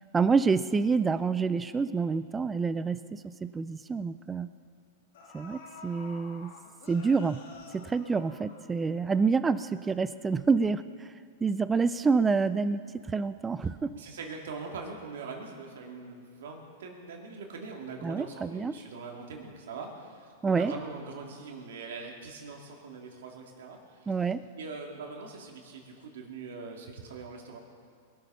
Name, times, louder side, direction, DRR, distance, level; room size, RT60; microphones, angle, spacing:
voice 1, 0.1-3.0 3.4-4.5 5.3-6.5 6.9-7.4 7.7-11.1 11.4-12.8 13.1-13.9 18.0-18.7 20.4-20.7 24.1-24.4, right 4 dB, 15° right, 14 dB, 0.4 m, -27 dB
sound 1, 4.6-4.7 5.1-9.1 9.4-9.5, left 4 dB, 70° left, 2.4 m, -49 dB
voice 2, 13.9-24.1 24.6-27.6, right 4 dB, 80° right, 1 dB, 2.5 m, -42 dB
22.0 x 8.3 x 5.6 m, 2.2 s
hypercardioid pair, 125°, 0 cm